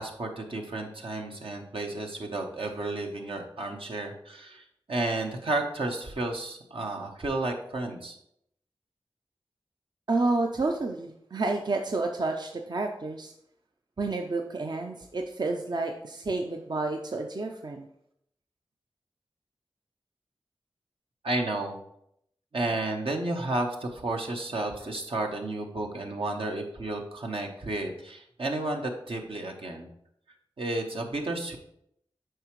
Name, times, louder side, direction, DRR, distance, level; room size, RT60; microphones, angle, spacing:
voice 1, 0.0-8.2 21.2-21.8 22.5-29.9 30.6-31.6, right 2 dB, 75° right, 2 dB, 1.0 m, -32 dB
voice 2, 10.1-13.3 14.0-17.9, right 3 dB, 50° right, 3 dB, 0.5 m, -30 dB
7.8 x 4.9 x 3.1 m, 0.74 s
cardioid pair, 45°, 9 cm